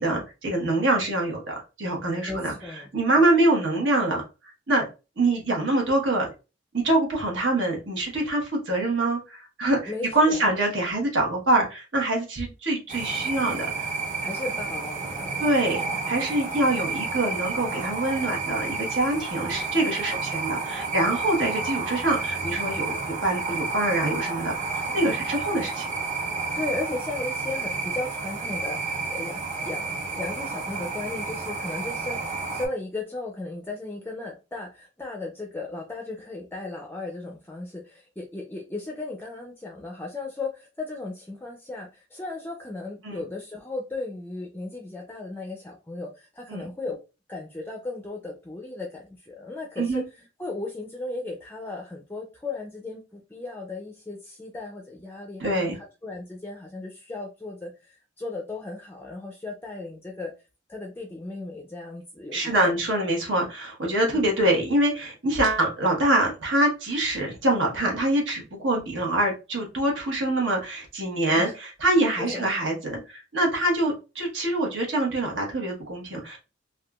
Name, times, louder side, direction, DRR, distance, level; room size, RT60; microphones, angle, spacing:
voice 1, 0.0-2.5 2.9-4.9 5.2-6.3 6.7-13.9 15.4-25.9 43.0-43.2 46.5-46.6 49.8-50.0 55.4-55.8 62.3-76.4, right 1 dB, 75° right, 0 dB, 1.2 m, -25 dB
voice 2, 2.3-2.9 9.8-10.5 14.2-15.5 16.2-16.3 24.9-25.2 26.6-29.9 30.1-47.0 47.3-60.3 60.7-62.7 64.0-64.2 71.3-71.6 72.2-72.5, left 3 dB, 10° left, 0 dB, 0.4 m, -36 dB
sound 1, 12.9-32.7, right 4 dB, 45° right, 1.1 m, -31 dB
3.5 x 2.5 x 2.3 m, 0.30 s
head